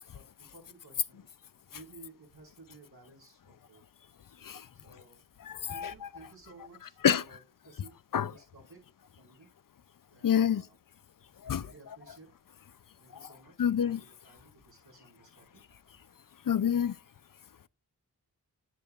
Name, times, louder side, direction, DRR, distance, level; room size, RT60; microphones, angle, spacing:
voice 1, 0.1-1.3 1.7-3.8 4.7-5.2 5.7-8.8 9.2-9.5 10.1-10.8 11.5-12.3 13.0-15.6, right 3 dB, 75° right, 4.9 m, -56 dB
voice 2, 5.5-5.9 7.0-7.2 8.1-8.3 10.2-10.6 11.5-11.6 13.6-14.0 16.5-16.9, left 8 dB, 60° left, 0.5 m, -26 dB
10.0 x 8.5 x 2.4 m
cardioid pair, 40°, 38 cm